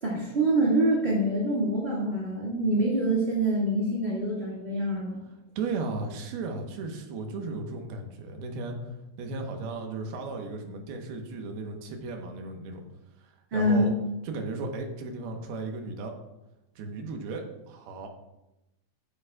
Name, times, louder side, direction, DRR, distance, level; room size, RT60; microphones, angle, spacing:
voice 1, 0.0-5.2 13.5-13.9, right 1 dB, 30° right, -7 dB, 1.0 m, -25 dB
voice 2, 5.6-8.9 9.2-12.8 13.2-13.9 14.2-16.1 16.8-18.1, right 3 dB, 75° right, 3 dB, 3.0 m, -35 dB
14.5 x 8.6 x 2.4 m, 0.93 s
omnidirectional pair, 4.6 m